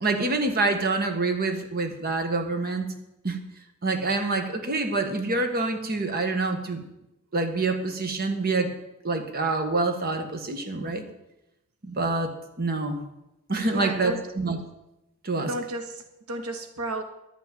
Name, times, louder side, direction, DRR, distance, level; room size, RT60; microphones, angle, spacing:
voice 1, 0.0-2.9 3.2-3.4 3.8-6.8 7.3-8.7 9.0-11.0 11.8-12.3 12.6-13.0 13.5-14.6 15.2-15.5, right 3 dB, 45° right, 5 dB, 1.5 m, -26 dB
voice 2, 13.6-14.2 15.4-17.0, right 1 dB, 85° right, 7 dB, 1.2 m, -33 dB
12.0 x 6.0 x 9.2 m, 0.90 s
head